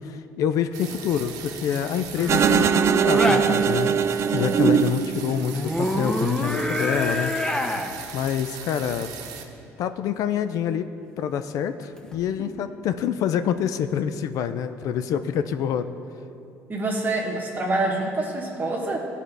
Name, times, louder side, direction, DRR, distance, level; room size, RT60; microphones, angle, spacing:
voice 1, 0.0-3.9 4.3-7.3 8.1-9.1 9.8-10.9 11.2-15.9, left 8 dB, 65° left, 10 dB, 0.4 m, -26 dB
sound 1, 0.7-2.6 2.9-9.4, right 7 dB, 75° right, 0.8 m, -40 dB
sound 2, 2.2-3.5 5.4-7.9 12.0-12.2, left 1 dB, 10° left, 0.8 m, -26 dB
sound 3, 2.3-5.6, right 7 dB, 50° right, 0.4 m, -21 dB
voice 2, 4.4-4.8 12.4-12.5 16.7-19.0, right 2 dB, 30° right, -1 dB, 1.2 m, -27 dB
13.5 x 4.9 x 3.3 m, 2.7 s
supercardioid pair, 75°, 6 cm